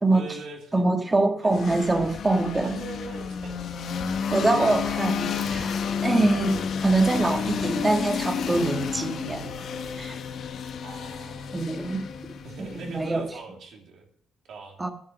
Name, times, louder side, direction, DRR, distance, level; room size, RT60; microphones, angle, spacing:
voice 1, 0.1-0.8 1.4-1.8 2.6-3.6 4.1-5.0 10.8-11.6 12.4-14.1 14.5-14.8, right 3 dB, 70° right, 1 dB, 2.7 m, -42 dB
voice 2, 0.7-2.8 4.3-9.6 10.0-10.2 11.5-12.1 12.6-13.2 14.8-14.9, right 2 dB, 20° right, 6 dB, 1.7 m, -24 dB
sound 1, 1.5-13.3, left 6 dB, 65° left, 1.2 m, -31 dB
9.9 x 9.6 x 6.4 m, 0.68 s
cardioid pair, 90°, 0 cm